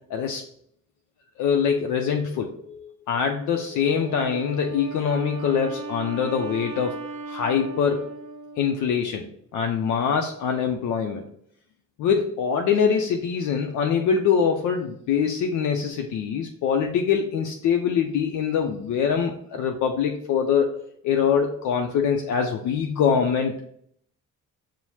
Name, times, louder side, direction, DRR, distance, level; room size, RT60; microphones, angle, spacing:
voice 1, 0.1-0.4 1.4-6.9 7.3-8.0 8.6-9.3 9.5-11.2 12.0-20.8 21.0-23.6, left 7 dB, 75° left, 3 dB, 0.5 m, -24 dB
Wind instrument woodwind instrument, 3.9-9.3, right 3 dB, 80° right, 0.6 m, -37 dB
5.5 x 2.0 x 3.0 m, 0.67 s
cardioid pair, 90°, 30 cm